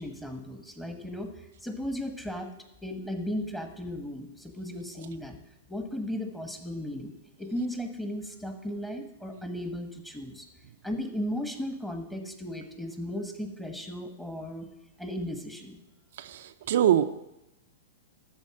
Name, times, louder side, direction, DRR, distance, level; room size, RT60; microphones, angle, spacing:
voice 1, 0.0-2.5 2.8-5.4 5.7-10.5 10.8-14.7 15.0-15.8, equal, 5° left, 5 dB, 1.3 m, -36 dB
voice 2, 16.7-17.1, right 10 dB, 70° right, 8 dB, 0.5 m, -22 dB
13.0 x 4.3 x 7.5 m, 0.91 s
hypercardioid pair, 135°, 0 cm